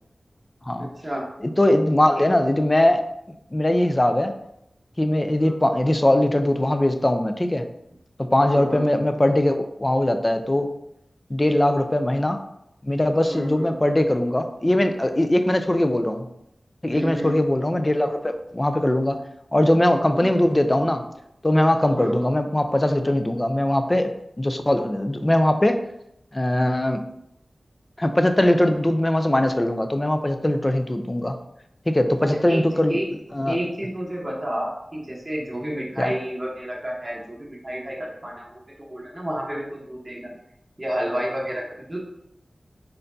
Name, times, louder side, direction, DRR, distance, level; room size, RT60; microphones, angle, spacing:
voice 1, 0.8-1.2 5.4-5.6 8.5-8.8 13.3-13.7 16.9-17.4 20.1-20.3 22.0-22.3 32.5-32.6 32.9-33.1 33.4-38.6 38.9-40.3 40.8-42.0, equal, 20° right, -4 dB, 1.1 m, -30 dB
voice 2, 1.6-3.0 3.5-4.3 5.0-7.7 8.2-10.7 11.3-12.4 12.8-16.3 16.8-19.2 19.5-21.0 21.4-24.1 24.4-25.8 26.3-27.0 28.0-31.4 31.9-33.0 33.3-33.6 36.0-36.2, left 1 dB, 25° left, 7 dB, 0.4 m, -21 dB
4.2 x 3.9 x 2.7 m, 0.80 s
wide cardioid pair, 75°, 0 cm